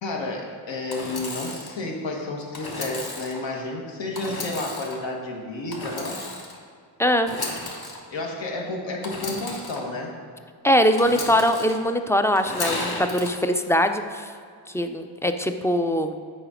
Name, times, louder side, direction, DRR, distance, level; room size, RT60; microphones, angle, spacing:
voice 1, 0.0-6.2 8.1-10.2, left 2 dB, 75° left, 0 dB, 1.4 m, -31 dB
Engine / Sawing, 0.9-1.7 2.5-3.4 4.1-5.0 5.7-6.6 7.2-8.0 9.0-9.8 11.0-11.7 12.4-13.3, left 2 dB, 55° left, 1.5 m, -33 dB
voice 2, 7.0-7.3 10.6-14.3 14.7-16.2, equal, 5° left, 7 dB, 0.4 m, -22 dB
8.0 x 5.1 x 5.0 m, 2.2 s
cardioid pair, 85°, 45 cm